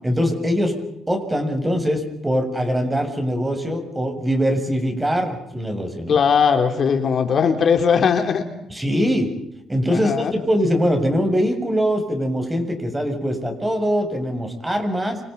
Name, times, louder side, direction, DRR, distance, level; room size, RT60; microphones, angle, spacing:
voice 1, 0.0-0.8 1.1-6.2 8.7-9.3 9.7-15.2, equal, 15° right, 5 dB, 7.1 m, -22 dB
voice 2, 6.1-8.5 9.9-10.3, left 6 dB, 55° left, 6 dB, 3.5 m, -19 dB
29.5 x 27.5 x 5.5 m, 0.81 s
cardioid pair, 90°, 0 cm